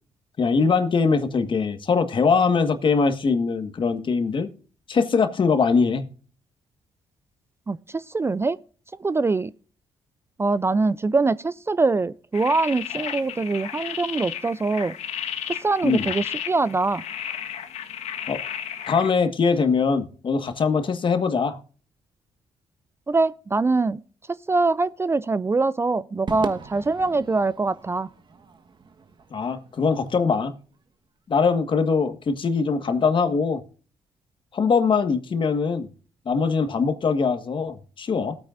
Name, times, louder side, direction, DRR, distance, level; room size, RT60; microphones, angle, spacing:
voice 1, 0.4-4.5 4.9-6.0 15.8-16.1 18.3-18.4 18.9-21.6 29.3-30.5 31.3-33.6 34.5-35.9 36.2-38.4, left 5 dB, 45° left, 1.5 m, -22 dB
voice 2, 7.7-8.6 9.0-9.5 10.4-14.9 15.6-17.0 23.1-24.0 24.5-28.1, right 3 dB, 20° right, 0.4 m, -23 dB
sound 1, 12.3-19.1, left 9 dB, 80° left, 1.4 m, -33 dB
Crowd / Fireworks, 26.3-30.8, right 5 dB, 45° right, 1.3 m, -39 dB
18.5 x 9.0 x 2.5 m
cardioid pair, 75°, 11 cm